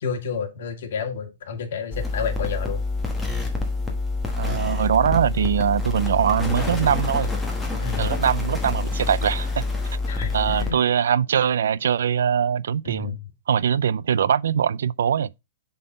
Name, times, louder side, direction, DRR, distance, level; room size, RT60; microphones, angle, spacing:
voice 1, 0.0-2.8 7.8-8.2 10.1-10.8 12.8-13.2, left 6 dB, 60° left, 1.7 m, -30 dB
sound 1, 1.9-10.7, left 3 dB, 5° left, 1.1 m, -27 dB
voice 2, 4.4-7.3 8.0-9.6 10.3-13.2 13.5-15.3, right 8 dB, 85° right, 0.3 m, -22 dB
7.6 x 3.9 x 3.9 m
hypercardioid pair, 175°, 0 cm